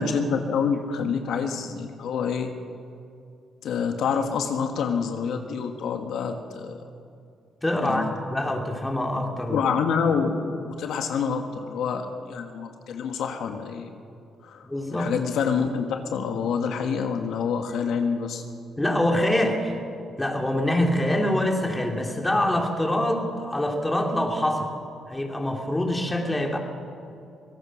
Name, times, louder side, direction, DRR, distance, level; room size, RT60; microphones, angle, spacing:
voice 1, 0.0-2.5 3.6-6.8 7.8-8.1 9.5-14.0 14.4-18.4, left 6 dB, 75° left, 5 dB, 1.5 m, -27 dB
voice 2, 7.6-9.6 14.6-15.1 18.8-19.8 20.2-24.7 25.1-26.6, left 1 dB, 10° left, 2 dB, 3.2 m, -25 dB
24.5 x 17.5 x 6.4 m, 2.5 s
cardioid pair, 90°, 0 cm